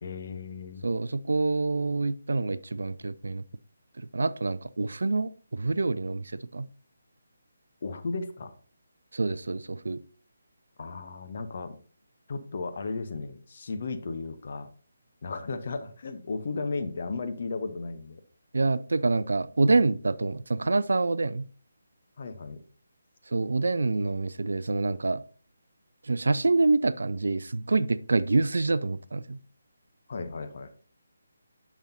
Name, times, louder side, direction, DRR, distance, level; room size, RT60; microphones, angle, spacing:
voice 1, 0.0-0.9 7.8-8.5 10.8-11.8 12.3-14.7 15.2-18.2 22.2-22.6 30.1-30.8, left 4 dB, 45° left, 8 dB, 0.9 m, -35 dB
voice 2, 0.8-3.4 4.0-6.7 9.1-10.0 18.5-21.5 23.3-25.2 26.0-29.4, right 3 dB, 60° right, 16 dB, 0.4 m, -26 dB
10.0 x 6.1 x 2.7 m, 0.40 s
figure-of-eight pair, 145°, 0 cm